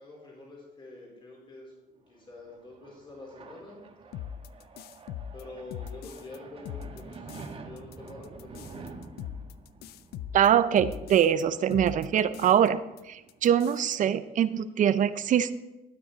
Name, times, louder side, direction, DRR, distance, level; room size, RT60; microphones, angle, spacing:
voice 1, 0.0-3.8 5.3-8.9, left 2 dB, 30° left, -3 dB, 4.0 m, -46 dB
sound 1, 2.2-13.5, right 4 dB, 35° right, 1.5 m, -49 dB
sound 2, 4.1-6.4 6.7-7.5 7.8-11.4 11.7-12.7 13.0-13.1 13.3-14.0, left 9 dB, 70° left, 0.4 m, -41 dB
voice 2, 10.3-12.8 13.1-15.5, right 9 dB, 50° right, 13 dB, 0.6 m, -23 dB
12.5 x 9.2 x 4.0 m, 1.0 s
cardioid pair, 110°, 17 cm